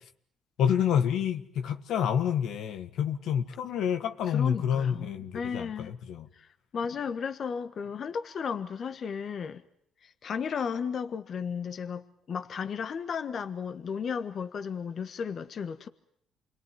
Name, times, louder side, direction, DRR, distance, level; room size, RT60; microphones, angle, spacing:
voice 1, 0.6-6.3, left 8 dB, 75° left, 1.6 m, -28 dB
voice 2, 4.3-5.9 6.3-9.6 10.0-15.9, left 6 dB, 50° left, 1.4 m, -34 dB
28.5 x 22.0 x 9.4 m
cardioid pair, 110°, 0 cm